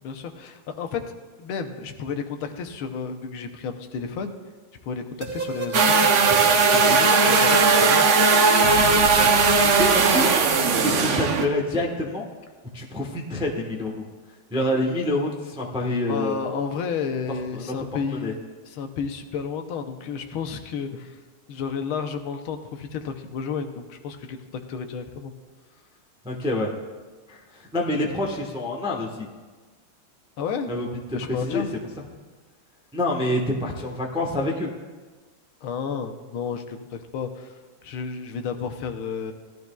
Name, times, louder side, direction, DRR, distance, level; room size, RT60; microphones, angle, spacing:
voice 1, 0.0-1.0 1.4-4.3 4.8-6.1 6.7-8.1 16.1-18.4 18.7-21.2 21.5-25.3 30.4-30.7 31.1-31.7 35.6-39.3, left 6 dB, 80° left, 5 dB, 1.6 m, -32 dB
sound 1, 5.2-10.9, right 5 dB, 55° right, 1.2 m, -30 dB
sound 2, 5.7-11.5, right 4 dB, 85° right, 0.6 m, -18 dB
voice 2, 6.3-6.6 8.9-10.3 10.7-12.3 12.7-14.0 14.5-16.3 17.5-17.7 18.1-18.3 26.2-26.7 27.3-29.3 30.7-30.9 31.3-31.6 32.9-34.7, left 1 dB, 5° right, -1 dB, 0.6 m, -27 dB
17.5 x 12.0 x 2.3 m, 1.3 s
omnidirectional pair, 2.3 m